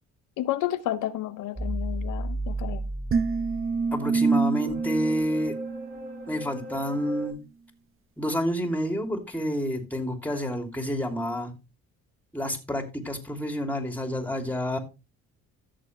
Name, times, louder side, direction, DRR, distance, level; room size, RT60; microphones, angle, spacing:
voice 1, 0.4-2.8, left 13 dB, 85° left, 0.7 m, -31 dB
sound 1, 1.5-7.3, right 1 dB, 25° right, 6.7 m, -35 dB
sound 2, 3.1-6.4, right 4 dB, 45° right, 0.8 m, -27 dB
voice 2, 3.9-5.5 6.3-7.4 8.2-11.5 12.3-14.8, equal, 5° left, 2.9 m, -29 dB
13.5 x 7.0 x 3.2 m
cardioid pair, 90°, 30 cm